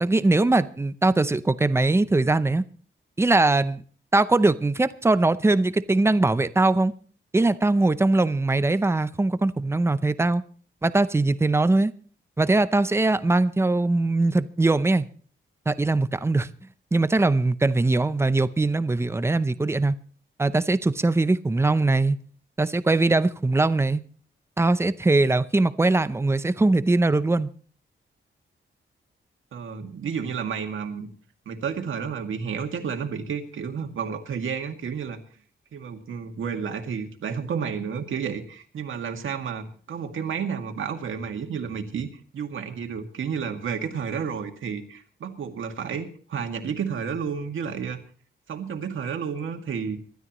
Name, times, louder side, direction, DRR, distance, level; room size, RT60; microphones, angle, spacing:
voice 1, 0.0-2.6 3.2-3.8 4.1-6.9 7.3-10.4 10.8-11.9 12.4-15.0 15.7-16.5 16.9-19.9 20.4-22.2 22.6-24.0 24.6-27.5, right 2 dB, 10° right, 14 dB, 0.6 m, -21 dB
voice 2, 29.5-31.1 31.5-35.2 35.7-42.1 42.3-48.0 48.5-50.0, right 6 dB, 75° right, 4 dB, 2.1 m, -31 dB
25.5 x 12.5 x 3.0 m, 0.43 s
wide cardioid pair, 165°, 21 cm